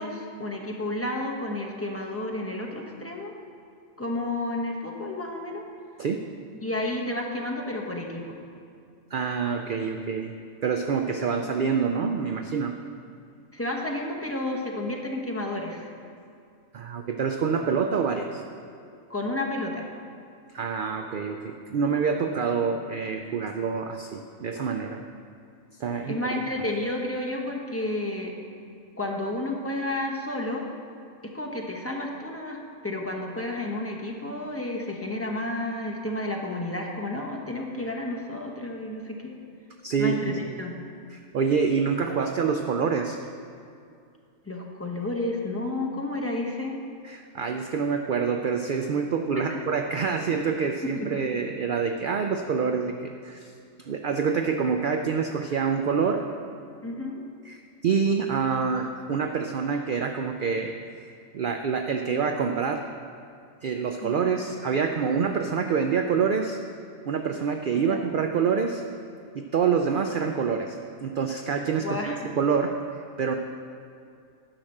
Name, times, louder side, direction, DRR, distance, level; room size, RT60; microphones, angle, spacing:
voice 1, 0.0-3.3 4.0-5.6 6.6-8.4 13.5-15.9 19.1-19.9 26.1-28.3 29.0-30.7 31.2-39.4 40.0-40.7 44.4-46.8 49.3-49.6 50.3-50.4 50.9-51.1 56.8-57.2 64.0-64.2 67.9-68.0 71.8-72.3, left 1 dB, 10° left, 0 dB, 0.9 m, -31 dB
voice 2, 9.1-10.3 10.6-12.8 16.7-18.4 20.5-25.0 25.8-26.2 39.8-40.4 41.1-43.2 47.0-53.5 53.8-56.3 57.4-60.7 61.0-62.9 63.6-66.6 67.1-68.8 69.3-73.3, right 6 dB, 60° right, 5 dB, 0.5 m, -26 dB
10.5 x 6.0 x 6.5 m, 2.4 s
omnidirectional pair, 1.3 m